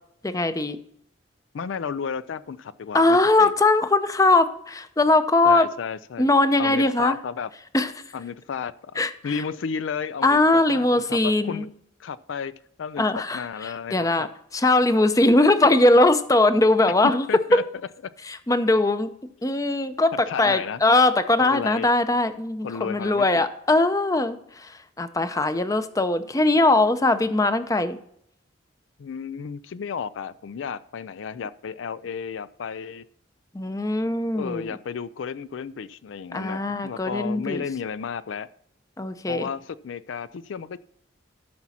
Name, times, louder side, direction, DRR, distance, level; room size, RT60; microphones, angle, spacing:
voice 1, 0.2-0.8 2.9-5.7 6.2-7.2 7.7-7.9 9.0-9.3 10.2-11.6 13.0-14.3 14.5-17.2 18.3-19.1 19.4-24.7 25.0-28.0 33.5-34.7 36.3-37.6 39.0-39.5, left 2 dB, 15° left, 10 dB, 0.6 m, -20 dB
voice 2, 1.5-3.5 5.4-6.3 6.6-7.5 8.1-11.7 12.0-14.3 17.3-17.6 20.1-20.8 21.4-21.9 22.6-23.4 29.0-33.1 34.3-38.5 39.3-40.8, left 6 dB, 75° left, 16 dB, 0.4 m, -33 dB
13.0 x 6.0 x 4.2 m, 0.70 s
head